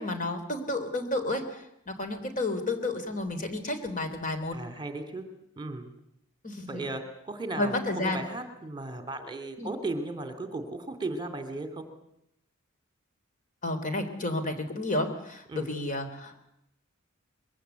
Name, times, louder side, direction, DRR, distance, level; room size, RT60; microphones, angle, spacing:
voice 1, 0.0-4.6 6.4-6.8 7.6-8.3 9.6-9.7 13.6-16.4, left 2 dB, 40° left, 7 dB, 3.6 m, -31 dB
voice 2, 4.5-5.3 5.6-5.9 6.7-11.8 15.5-15.7, right 2 dB, 20° right, 8 dB, 2.7 m, -36 dB
24.0 x 22.5 x 8.2 m, 0.79 s
head